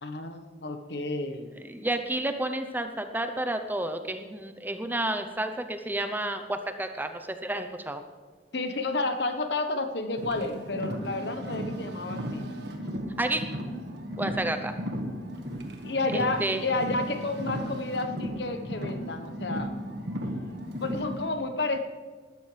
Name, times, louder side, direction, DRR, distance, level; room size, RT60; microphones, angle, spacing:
voice 1, 0.0-1.5 8.5-12.4 15.8-19.8 20.8-21.8, left 2 dB, 70° left, 7 dB, 1.2 m, -31 dB
voice 2, 1.6-8.0 13.2-13.4 14.2-14.7 16.1-16.6, right 1 dB, 10° right, 7 dB, 0.7 m, -31 dB
Car, 10.2-21.3, equal, 70° right, 1.6 m, -35 dB
20.0 x 13.0 x 3.4 m, 1.5 s
head